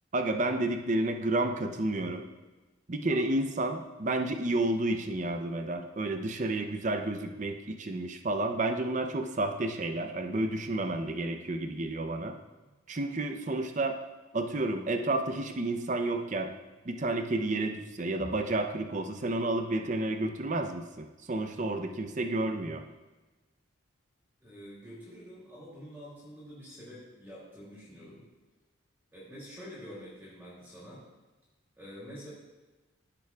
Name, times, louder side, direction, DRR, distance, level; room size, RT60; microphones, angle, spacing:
voice 1, 0.1-2.2 2.9-12.3 12.9-14.0 14.3-16.5 16.9-22.8, right 2 dB, 35° right, 6 dB, 0.6 m, -31 dB
voice 2, 24.4-28.2 29.1-31.0 31.8-32.3, equal, 10° right, -8 dB, 2.5 m, -47 dB
15.0 x 6.9 x 2.3 m, 1.2 s
head